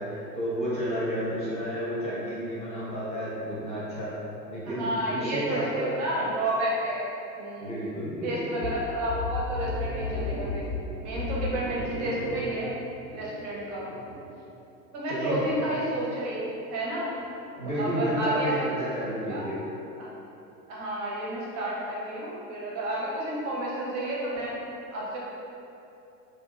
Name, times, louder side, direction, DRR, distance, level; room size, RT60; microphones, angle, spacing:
voice 1, 0.0-4.1 4.5-5.9 7.6-8.7 15.1-15.4 17.6-19.6, equal, 10° left, -10 dB, 0.9 m, -31 dB
voice 2, 4.7-7.1 7.4-7.8 8.2-10.6 11.0-12.8 13.1-13.9 14.9-17.1 17.5-18.5 19.3-19.5 20.0-20.1 20.7-24.6 24.9-25.2, right 1 dB, 35° right, -5 dB, 0.7 m, -31 dB
sound 1, 8.6-14.2, left 3 dB, 85° left, 1.0 m, -34 dB
2.8 x 2.4 x 2.4 m, 2.9 s
figure-of-eight pair, 90°, 50 cm